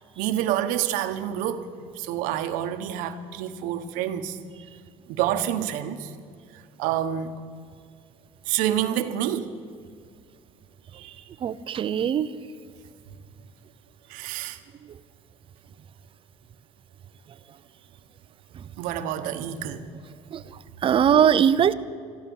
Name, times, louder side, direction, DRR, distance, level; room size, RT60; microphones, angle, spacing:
voice 1, 0.2-4.4 5.1-6.1 6.5-7.4 8.5-9.5 10.9-11.2 14.1-14.6 18.8-19.9, right 11 dB, 85° right, 9 dB, 1.1 m, -28 dB
voice 2, 11.4-12.3 20.3-20.4 20.8-21.7, right 8 dB, 40° right, 14 dB, 0.7 m, -20 dB
14.0 x 13.0 x 7.1 m, 2.2 s
cardioid pair, 115°, 13 cm